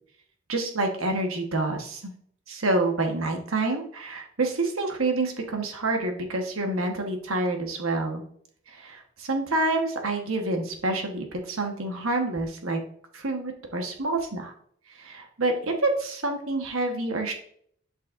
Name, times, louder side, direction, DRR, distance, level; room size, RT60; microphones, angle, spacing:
voice 1, 0.5-2.1 2.5-8.2 8.7-12.8 13.1-14.5 14.9-17.3, right 2 dB, 75° right, 3 dB, 1.4 m, -28 dB
11.0 x 5.6 x 2.6 m, 0.63 s
head